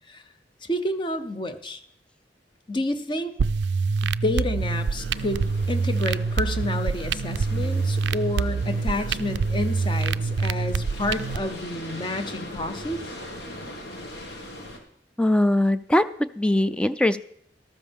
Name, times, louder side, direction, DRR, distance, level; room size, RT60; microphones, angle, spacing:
voice 1, 0.6-1.8 2.7-3.3 4.2-13.0, left 1 dB, 30° left, 9 dB, 0.8 m, -29 dB
sound 1, 3.4-11.4, right 4 dB, 75° right, 0.4 m, -26 dB
sound 2, 4.5-14.8, left 1 dB, 65° left, 1.8 m, -40 dB
voice 2, 15.2-16.0 16.4-17.2, left 1 dB, 5° left, 13 dB, 0.3 m, -20 dB
13.0 x 12.5 x 3.5 m, 0.66 s
head